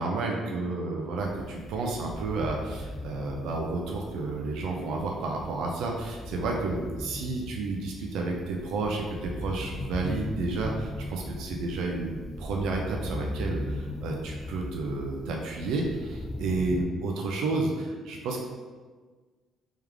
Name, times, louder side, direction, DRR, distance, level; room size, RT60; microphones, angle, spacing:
voice 1, 0.0-18.4, right 3 dB, 90° right, 0 dB, 0.5 m, -31 dB
sound 1, 1.2-16.9, left 1 dB, 15° left, 0.3 m, -38 dB
3.5 x 3.2 x 3.5 m, 1.4 s
cardioid pair, 140°, 0 cm